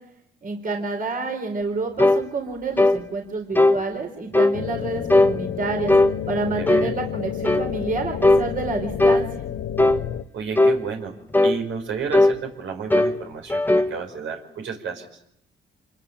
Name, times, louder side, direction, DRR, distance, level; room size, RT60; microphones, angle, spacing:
voice 1, 0.4-5.9 6.3-9.3, right 3 dB, 45° right, 3 dB, 4.2 m, -28 dB
sound 1, 2.0-2.2 2.8-3.0 3.6-3.8 4.3-4.6 5.1-5.4 5.9-6.1 6.7-6.9 7.4-7.7 8.2-8.5 9.0-9.3 9.8-10.0 10.6-10.8 11.3-11.6 12.1-12.4 12.9-13.2 13.5-13.9, left 2 dB, 10° left, 1.4 m, -17 dB
sound 2, 4.5-10.2, left 10 dB, 70° left, 1.2 m, -30 dB
voice 2, 6.5-6.9 10.3-15.1, right 6 dB, 75° right, 3 dB, 5.4 m, -32 dB
27.0 x 22.5 x 9.0 m, 0.76 s
cardioid pair, 90°, 20 cm